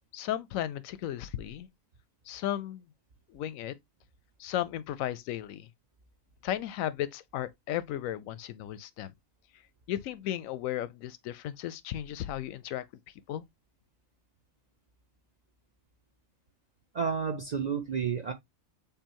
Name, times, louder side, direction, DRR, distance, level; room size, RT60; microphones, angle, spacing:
voice 1, 0.1-1.7 2.3-2.9 3.3-3.7 4.4-5.7 6.4-9.1 9.9-12.8 13.3-13.4, left 12 dB, 90° left, 1.0 m, -35 dB
voice 2, 16.9-18.3, right 6 dB, 55° right, 0.5 m, -30 dB
6.7 x 2.8 x 2.8 m
omnidirectional pair, 1.4 m